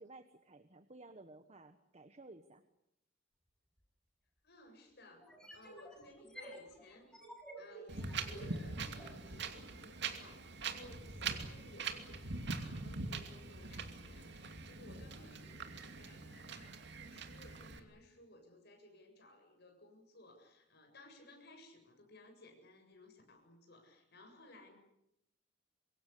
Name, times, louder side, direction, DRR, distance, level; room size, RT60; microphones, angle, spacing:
voice 1, 0.0-2.6, right 2 dB, 35° right, 10 dB, 1.3 m, -56 dB
sound 1, 3.8-3.9 5.2-9.2, right 1 dB, 5° left, 6.9 m, -52 dB
voice 2, 4.4-7.1 7.6-24.8, left 2 dB, 60° left, 4 dB, 7.6 m, -59 dB
Wind, 7.9-17.8, right 4 dB, 65° right, 2.7 m, -43 dB
26.0 x 22.5 x 8.5 m, 0.81 s
head